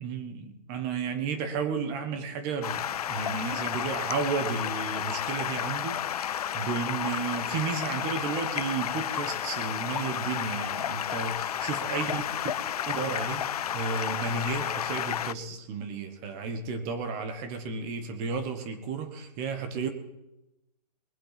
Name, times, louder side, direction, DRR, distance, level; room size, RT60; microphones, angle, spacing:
voice 1, 0.0-12.2 12.9-19.9, right 5 dB, 20° right, 9 dB, 1.4 m, -33 dB
Stream, 2.6-15.3, left 10 dB, 65° left, 0.5 m, -32 dB
21.5 x 7.6 x 5.9 m, 0.93 s
hypercardioid pair, 165°, 21 cm